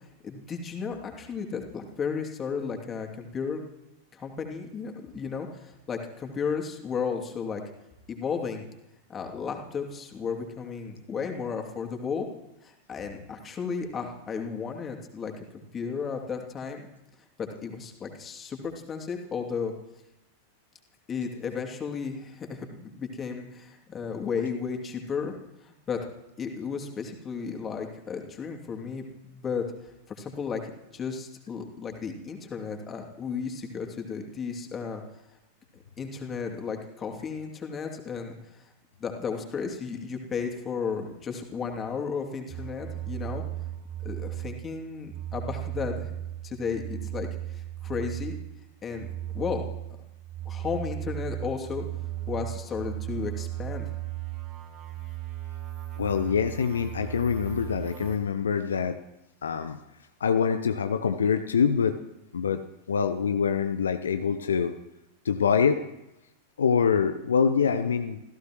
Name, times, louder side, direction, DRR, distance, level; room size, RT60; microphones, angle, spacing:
voice 1, 0.2-3.6 4.1-7.6 8.1-8.6 9.1-12.3 12.6-16.9 17.6-19.7 21.1-25.3 25.6-26.0 26.4-29.0 29.3-29.7 30.1-30.6 30.9-35.0 36.0-38.3 39.0-43.4 44.0-46.1 46.4-48.4 48.8-49.1 49.3-49.6 50.5-51.9 52.3-53.9, left 6 dB, 25° left, 3 dB, 2.7 m, -34 dB
sound 1, 42.5-44.7 45.0-48.5 48.9-58.2, right 13 dB, 35° right, 4.9 m, -36 dB
voice 2, 56.0-59.0 59.4-59.8 60.2-62.0 62.3-62.6 62.9-64.7 65.2-65.8 66.6-68.2, left 6 dB, 70° left, 9 dB, 0.8 m, -25 dB
28.0 x 16.0 x 3.1 m, 0.92 s
figure-of-eight pair, 90°, 0 cm